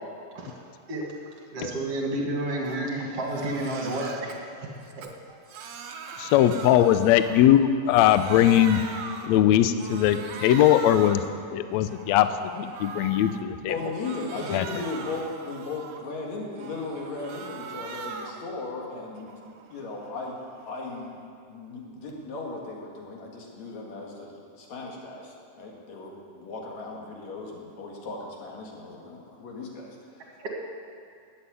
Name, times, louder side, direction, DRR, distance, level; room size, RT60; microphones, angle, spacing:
voice 1, 1.5-4.4 5.3-5.5 30.4-30.5, right 1 dB, 50° right, -1 dB, 2.9 m, -30 dB
Crying sobbing, 2.6-2.9 3.2-4.4 4.8-7.6 7.9-9.4 9.8-11.3 11.7-13.4 13.8-16.1 16.5-18.5 18.8-21.2, right 5 dB, 65° right, 1.6 m, -41 dB
voice 2, 6.2-8.8 9.2-11.2 11.5-13.7 14.5-14.6, left 11 dB, 85° left, 11 dB, 1.6 m, -20 dB
voice 3, 13.7-19.3 19.7-20.4 20.6-21.1 21.5-30.0, left 3 dB, 60° left, -1 dB, 3.1 m, -36 dB
13.0 x 8.6 x 9.6 m, 2.3 s
omnidirectional pair, 3.8 m